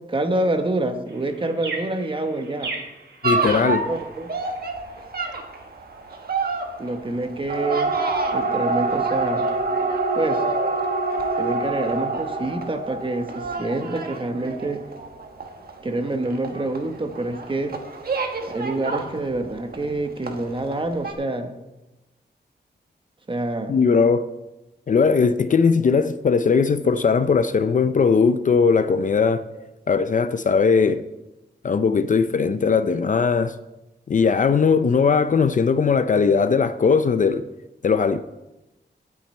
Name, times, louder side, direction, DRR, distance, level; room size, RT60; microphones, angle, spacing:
voice 1, 0.1-2.7 3.5-4.3 6.8-7.9 8.3-9.4 10.1-10.4 11.4-14.8 15.8-17.8 18.5-21.5 23.3-23.7, right 2 dB, 25° right, 6 dB, 1.1 m, -27 dB
sound 1, 1.1-7.3, right 3 dB, 75° right, 3.2 m, -40 dB
voice 2, 3.2-3.8 23.7-24.2 24.9-29.4 29.9-31.0 31.6-33.5 34.1-37.4 37.8-38.2, left 5 dB, 45° left, 12 dB, 0.5 m, -19 dB
sound 2, 3.2-19.9 20.2-20.8 21.0-21.1, right 3 dB, 55° right, 1.4 m, -26 dB
17.0 x 6.3 x 4.4 m, 1.0 s
wide cardioid pair, 125°, 19 cm